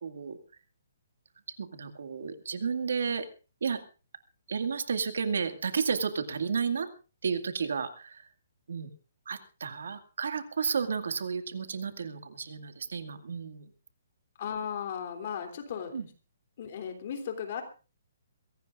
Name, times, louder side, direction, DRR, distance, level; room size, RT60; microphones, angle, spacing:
voice 1, 0.0-0.4 1.5-3.3 3.6-3.8 4.5-6.9 7.2-8.3 8.7-8.9 9.3-13.7 15.9-16.1, right 6 dB, 75° right, 9 dB, 2.2 m, -32 dB
voice 2, 14.4-16.1 16.6-17.6, left 7 dB, 40° left, 5 dB, 3.2 m, -36 dB
23.5 x 17.0 x 2.5 m, 0.34 s
hypercardioid pair, 170°, 0 cm